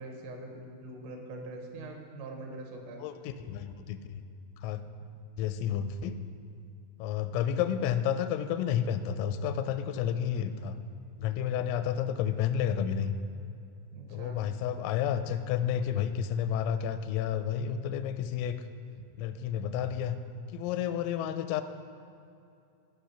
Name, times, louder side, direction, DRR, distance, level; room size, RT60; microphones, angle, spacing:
voice 1, 0.0-3.0 7.3-7.6 11.6-11.9 13.9-14.4, right 2 dB, 80° right, 2 dB, 3.8 m, -43 dB
voice 2, 3.0-4.3 4.6-4.8 5.4-6.2 7.0-10.8 11.2-13.1 14.1-18.6 19.2-20.2 20.5-21.6, left 9 dB, 85° left, 10 dB, 3.2 m, -31 dB
16.0 x 6.1 x 5.8 m, 2.6 s
omnidirectional pair, 5.9 m